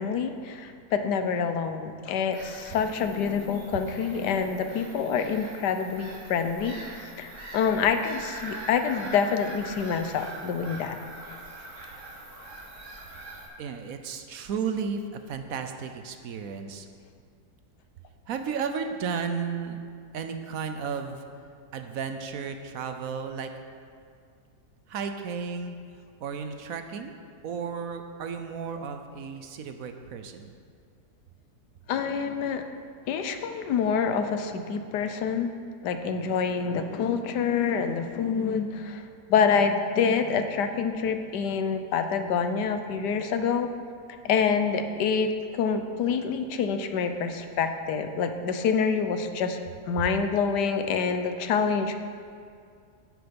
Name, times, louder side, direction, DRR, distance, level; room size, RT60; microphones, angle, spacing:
voice 1, 0.0-6.8 7.2-11.0 31.9-32.6 33.1-35.5 35.8-39.0 39.3-43.7 44.2-49.6 49.9-52.0, left 6 dB, 85° left, 8 dB, 1.4 m, -26 dB
Bird vocalization bird call bird song / Gull seagull, 2.3-13.5, right 2 dB, 50° right, 2.2 m, -43 dB
voice 2, 13.6-16.9 18.3-19.8 20.1-21.2 21.7-23.5 24.9-25.8 26.2-27.1 27.4-30.5, right 6 dB, 65° right, 7 dB, 1.0 m, -33 dB
9.9 x 9.5 x 5.3 m, 2.3 s
omnidirectional pair, 1.7 m